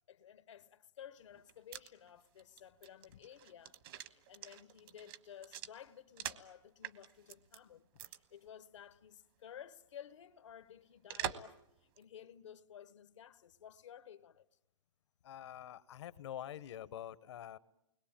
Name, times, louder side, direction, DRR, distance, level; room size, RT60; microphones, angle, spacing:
voice 1, 0.1-14.6, left 9 dB, 85° left, 1.3 m, -55 dB
sound 1, 1.3-6.5 6.8-7.6 8.0-8.2 8.5-8.6 11.1-11.6 12.0-12.1, right 11 dB, 50° right, 1.3 m, -45 dB
voice 2, 15.2-17.6, left 11 dB, 70° left, 1.0 m, -46 dB
29.0 x 22.0 x 8.9 m
hypercardioid pair, 155°, 15 cm